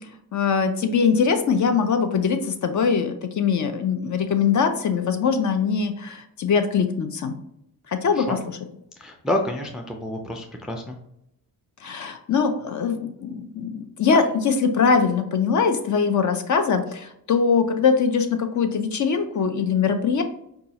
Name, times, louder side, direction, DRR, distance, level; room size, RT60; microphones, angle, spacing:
voice 1, 0.3-7.4 7.9-8.6 11.8-20.2, left 6 dB, 50° left, 7 dB, 0.5 m, -22 dB
voice 2, 9.0-11.0, left 1 dB, ahead, 2 dB, 0.3 m, -28 dB
5.0 x 2.3 x 2.8 m, 0.77 s
wide cardioid pair, 155°, 38 cm